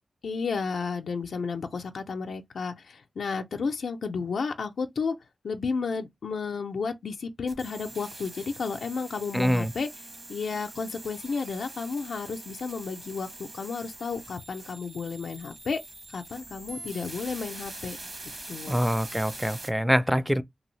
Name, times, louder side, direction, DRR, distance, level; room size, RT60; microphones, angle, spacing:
voice 1, 0.2-5.1 5.4-9.9 10.3-15.8 16.1-18.0 18.5-18.8, left 5 dB, 80° left, 0.4 m, -32 dB
sound 1, 7.5-19.7, right 2 dB, 50° right, 1.1 m, -43 dB
voice 2, 9.3-9.7 18.7-20.4, equal, ahead, 0.4 m, -25 dB
2.7 x 2.6 x 3.0 m
cardioid pair, 65°, 0 cm